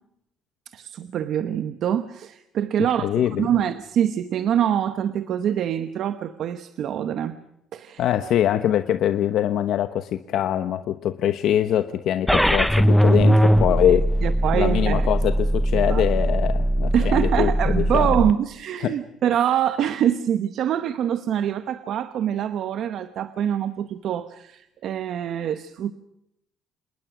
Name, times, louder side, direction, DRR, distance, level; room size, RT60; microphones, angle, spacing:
voice 1, 0.7-7.4 7.7-8.1 14.2-15.1 15.9-16.1 16.9-25.9, right 10 dB, 50° right, 11 dB, 1.0 m, -25 dB
voice 2, 2.8-3.5 8.0-14.2 14.5-18.2 18.8-18.9, left 11 dB, 55° left, 9 dB, 1.1 m, -23 dB
sound 1, 12.3-18.3, equal, ahead, 0.8 m, -20 dB
27.5 x 20.5 x 6.2 m, 0.80 s
cardioid pair, 170°, 0 cm